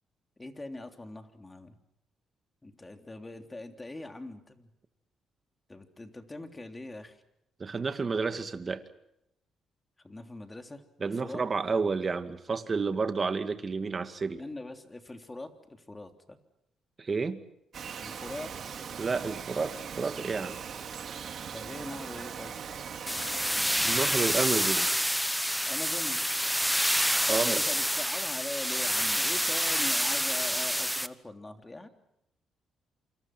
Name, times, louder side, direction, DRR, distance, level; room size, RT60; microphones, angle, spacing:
voice 1, 0.4-1.7 2.6-4.7 5.7-7.2 10.0-11.4 14.4-16.4 18.0-18.5 21.5-22.5 24.3-24.4 25.7-26.2 27.3-31.9, left 2 dB, 20° left, 5 dB, 3.3 m, -42 dB
voice 2, 7.6-8.8 11.0-14.4 17.0-17.4 19.0-20.6 23.8-24.9 27.3-27.6, right 4 dB, 35° right, 9 dB, 2.1 m, -30 dB
Bird vocalization bird call bird song, 17.7-24.5, right 7 dB, 55° right, 2.9 m, -40 dB
sound 1, 23.1-31.1, equal, ahead, 1.1 m, -28 dB
28.0 x 26.0 x 6.1 m, 0.80 s
cardioid pair, 90°, 0 cm